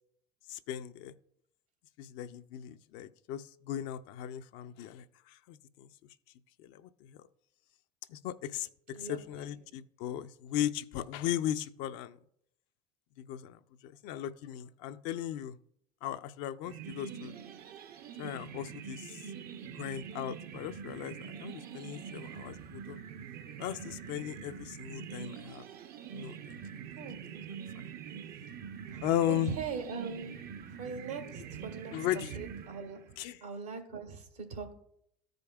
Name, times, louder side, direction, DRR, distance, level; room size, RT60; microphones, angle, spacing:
voice 1, 0.5-1.1 2.0-5.9 6.6-7.2 8.1-12.2 13.2-15.6 16.0-17.3 18.2-19.2 19.7-23.0 23.6-25.6 26.1-26.6 27.8-27.9 29.0-29.6 31.9-32.3 33.2-33.4, left 11 dB, 65° left, 0.5 m, -37 dB
voice 2, 8.9-9.4 27.0-27.2 28.9-30.4 30.8-33.0 33.4-34.7, right 5 dB, 90° right, 1.8 m, -41 dB
sound 1, 16.6-33.2, right 7 dB, 50° right, 0.6 m, -45 dB
14.5 x 5.2 x 2.3 m
hypercardioid pair, 70°, 20 cm